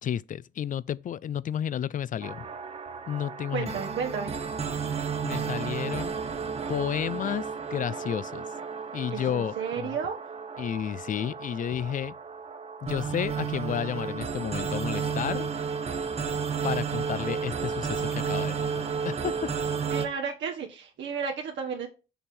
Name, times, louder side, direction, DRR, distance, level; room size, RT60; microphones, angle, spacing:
voice 1, 0.0-2.5 3.1-3.7 5.2-6.1 6.7-8.4 8.9-9.9 10.6-12.1 12.8-15.5 15.8-16.1 16.6-19.5, left 9 dB, 40° left, 0.4 m, -32 dB
sound 1, 2.2-20.1, right 6 dB, 30° right, 0.9 m, -32 dB
voice 2, 3.5-4.3 9.1-10.2 19.9-21.9, right 6 dB, 70° right, 1.2 m, -32 dB
7.0 x 3.7 x 6.0 m
cardioid pair, 90°, 20 cm